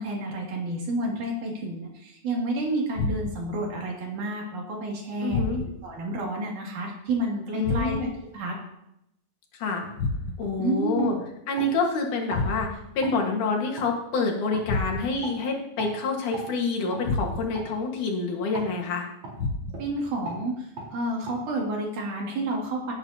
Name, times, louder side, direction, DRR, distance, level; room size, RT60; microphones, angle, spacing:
voice 1, 0.0-8.0 8.3-8.5 10.6-11.3 19.8-22.9, right 2 dB, 90° right, -2 dB, 4.1 m, -30 dB
sound 1, 2.9-3.6 5.3-5.9 7.6-8.3 10.0-10.6 12.3-13.0 14.7-15.3 17.0-17.7 19.4-20.0, left 3 dB, 65° left, 1.2 m, -30 dB
voice 2, 5.2-5.6 7.5-8.1 9.6-9.8 10.4-11.2 11.5-12.7 12.9-19.1, left 3 dB, 85° left, 1 dB, 3.3 m, -27 dB
sound 2, 9.8-10.0 10.4-10.6 11.0-11.7 12.3-12.5 13.0-13.2 13.8-13.9 14.5-14.7 15.2-15.4 15.8-16.0 16.3-16.5 16.9-17.1 17.5-17.7 18.5-18.7 19.2-19.4 19.7-19.9 20.2-20.4 20.8-20.9 21.3-21.4, right 2 dB, 70° right, 5.7 m, -38 dB
17.0 x 9.4 x 2.9 m, 0.82 s
omnidirectional pair, 3.5 m